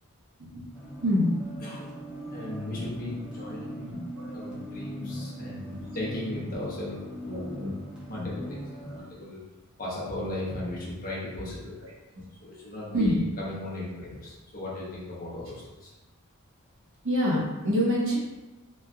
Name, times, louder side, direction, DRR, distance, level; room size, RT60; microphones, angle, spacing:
voice 1, 0.4-0.7 1.0-1.3 3.8-4.4 5.1-5.2 5.7-5.9 7.3-7.8 8.2-8.3 11.8-11.9 12.9-13.3 17.0-18.2, equal, 60° right, -5 dB, 0.8 m, -27 dB
sound 1, 0.7-9.0, equal, 5° right, 0.5 m, -40 dB
voice 2, 1.6-1.9 2.3-3.9 4.3-7.6 8.1-9.4 9.8-11.8 12.4-15.9, left 1 dB, 40° left, -6 dB, 0.8 m, -36 dB
3.1 x 2.6 x 2.3 m, 1.1 s
head